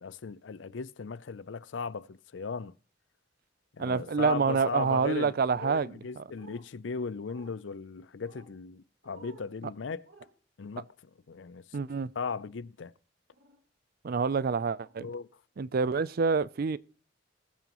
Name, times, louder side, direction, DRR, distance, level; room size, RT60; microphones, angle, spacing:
voice 1, 0.0-2.7 3.7-10.0 10.6-10.9 11.3-11.6 12.2-12.9 15.0-15.3, left 5 dB, 80° left, 0.5 m, -37 dB
voice 2, 3.8-6.2 11.7-12.1 14.0-15.1 15.6-16.8, right 5 dB, 55° right, 0.4 m, -27 dB
sound 1, 6.4-6.6 7.3-7.5 8.3-8.5 9.0-9.5 10.0-10.3 12.3-12.4 13.3-13.6 14.8-15.0 15.8-15.9, right 3 dB, 80° right, 2.4 m, -53 dB
21.0 x 9.2 x 3.0 m
head